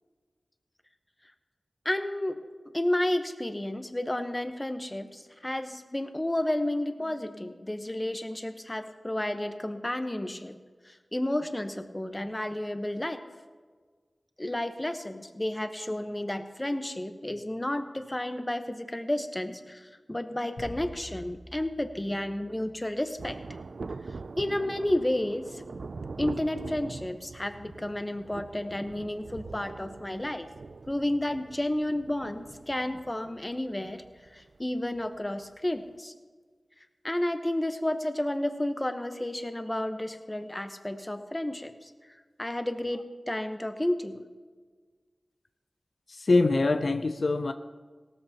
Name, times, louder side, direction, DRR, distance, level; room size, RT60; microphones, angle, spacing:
voice 1, 1.8-2.4 2.7-10.6 10.8-13.2 14.4-23.4 24.4-25.6 26.2-30.5 30.9-34.0 34.3-36.1 37.0-41.9 42.4-44.2, left 1 dB, 20° left, 8 dB, 1.0 m, -31 dB
sound 1, 20.6-23.1, left 1 dB, 85° left, 4.4 m, -46 dB
Thunder, 23.2-35.2 35.4-35.5, right 4 dB, 80° right, 0.3 m, -42 dB
voice 2, 46.1-47.5, left 3 dB, 70° left, 8 dB, 0.5 m, -24 dB
17.5 x 13.5 x 2.9 m, 1.5 s
wide cardioid pair, 55°, 0 cm